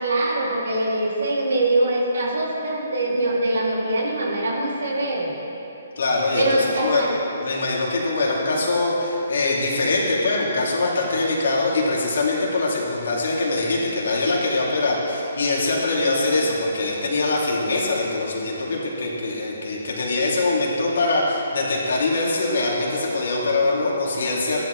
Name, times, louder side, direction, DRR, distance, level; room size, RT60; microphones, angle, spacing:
voice 1, 0.0-5.3 6.3-7.2, right 1 dB, 75° right, -3 dB, 2.6 m, -23 dB
voice 2, 6.0-7.0 7.4-24.6, left 2 dB, 70° left, -4 dB, 2.7 m, -23 dB
14.5 x 11.0 x 3.2 m, 3.0 s
hypercardioid pair, 145°, 0 cm